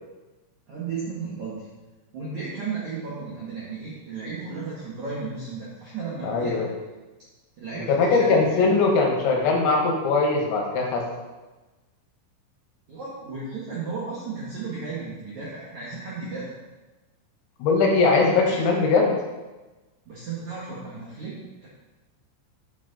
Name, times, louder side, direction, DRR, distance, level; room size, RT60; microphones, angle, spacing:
voice 1, 0.7-1.7 2.1-6.6 7.6-8.8 12.9-16.5 18.5-18.8 20.1-21.7, right 4 dB, 70° right, -7 dB, 1.8 m, -34 dB
voice 2, 6.2-6.7 7.9-11.0 17.6-19.1, left 4 dB, 75° left, 0 dB, 3.3 m, -21 dB
8.6 x 7.3 x 4.0 m, 1.2 s
omnidirectional pair, 5.7 m